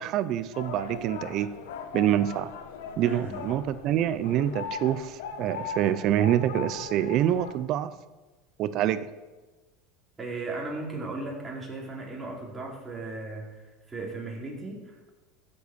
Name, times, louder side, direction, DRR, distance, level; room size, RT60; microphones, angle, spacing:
voice 1, 0.0-1.5 1.9-2.5 3.0-7.9 8.6-9.1, right 11 dB, 50° right, 14 dB, 0.7 m, -26 dB
sound 1, 0.5-7.6, left 5 dB, 85° left, 1.6 m, -39 dB
voice 2, 3.0-3.4 10.2-13.5 13.9-15.1, right 3 dB, 15° right, -3 dB, 4.0 m, -36 dB
14.5 x 7.8 x 7.0 m, 1.2 s
supercardioid pair, 125°, 0 cm